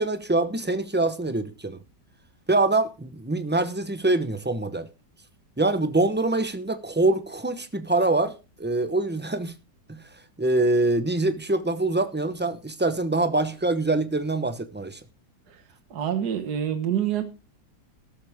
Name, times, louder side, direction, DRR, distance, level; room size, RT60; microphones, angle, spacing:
voice 1, 0.0-1.8 2.5-4.9 5.6-9.5 9.9-10.0 10.4-15.0, right 2 dB, 10° right, 0.6 m, -24 dB
voice 2, 15.9-17.2, right 9 dB, 65° right, 1.9 m, -26 dB
13.0 x 13.0 x 3.6 m
omnidirectional pair, 1.8 m